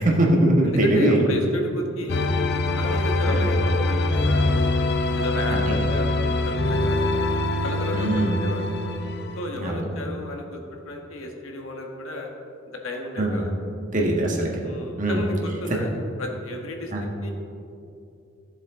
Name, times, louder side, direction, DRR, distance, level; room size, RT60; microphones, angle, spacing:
voice 1, 0.0-1.2 3.3-3.4 5.5-5.9 7.9-8.4 9.6-9.9 13.2-13.4 13.9-14.5 15.0-15.2 16.9-17.0, right 1 dB, 40° right, -1 dB, 1.5 m, -21 dB
voice 2, 0.6-2.3 2.7-4.5 5.1-7.2 7.6-8.8 9.4-12.3 12.7-13.5 14.6-15.9 16.2-17.3, left 1 dB, 80° left, 1 dB, 1.5 m, -33 dB
sound 1, 2.1-9.5, left 2 dB, 55° left, 0.6 m, -23 dB
15.0 x 7.4 x 3.7 m, 2.6 s
head